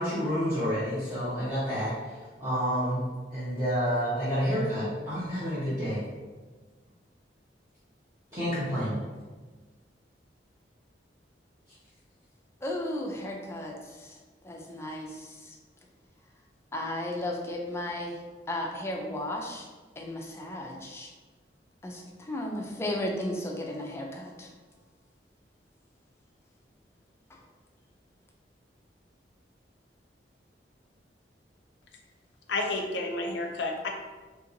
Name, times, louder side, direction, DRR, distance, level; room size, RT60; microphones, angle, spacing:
voice 1, 0.0-2.0 2.4-3.1 3.3-6.0 8.3-9.0, equal, 15° right, -13 dB, 0.8 m, -29 dB
voice 2, 12.6-14.2 14.4-15.6 16.7-18.2 18.5-19.7 20.0-21.1 21.8-24.5 27.3-27.4, left 1 dB, 15° left, 1 dB, 0.3 m, -35 dB
voice 3, 32.5-33.9, left 2 dB, 90° left, 2 dB, 0.5 m, -30 dB
2.8 x 2.8 x 2.6 m, 1.3 s
head